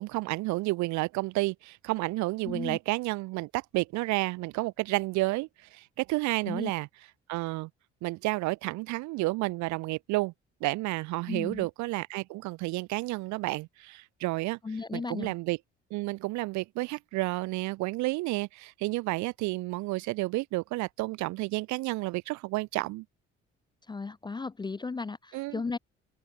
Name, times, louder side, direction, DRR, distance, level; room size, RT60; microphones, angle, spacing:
voice 1, 0.0-6.9 7.3-7.7 8.0-10.3 10.6-14.6 14.9-15.6 15.9-23.0 25.3-25.6, right 21 dB, 55° right, 0.6 m, -31 dB
voice 2, 2.4-2.8 6.4-6.7 11.3-11.7 14.6-15.3 23.9-25.8, left 4 dB, 15° left, 0.4 m, -35 dB
open air
figure-of-eight pair, 50°, 34 cm